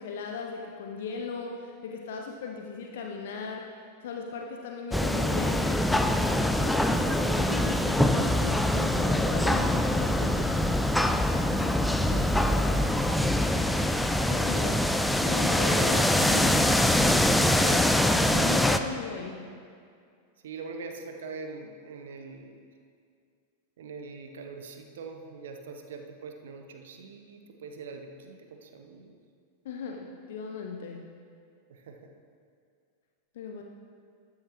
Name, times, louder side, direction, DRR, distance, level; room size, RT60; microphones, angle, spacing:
voice 1, 0.0-10.6 14.3-14.8 15.2-16.5 18.3-19.5 29.6-31.1 33.3-33.6, left 5 dB, 55° left, 2 dB, 0.7 m, -37 dB
sound 1, 4.9-18.8, left 1 dB, 5° left, 0.4 m, -24 dB
voice 2, 11.9-13.3 14.5-14.9 15.2-16.1 17.6-17.9 20.4-22.6 23.8-29.1 31.7-32.1, right 4 dB, 60° right, 4 dB, 0.8 m, -42 dB
12.5 x 9.5 x 3.0 m, 2.3 s
figure-of-eight pair, 90°, 0 cm